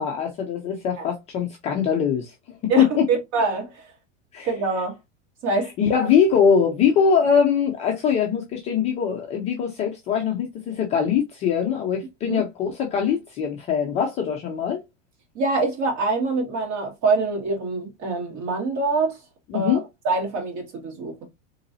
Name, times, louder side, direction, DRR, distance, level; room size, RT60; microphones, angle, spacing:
voice 1, 0.0-2.3 2.8-3.0 4.3-4.5 5.8-14.8 19.5-19.8, left 7 dB, 20° left, 0.3 m, -22 dB
voice 2, 2.7-3.9 4.4-5.0 5.4-6.1 12.3-12.4 15.4-19.2 19.5-21.3, right 3 dB, 45° right, 1.8 m, -25 dB
3.9 x 3.1 x 2.6 m
supercardioid pair, 150°, 35 cm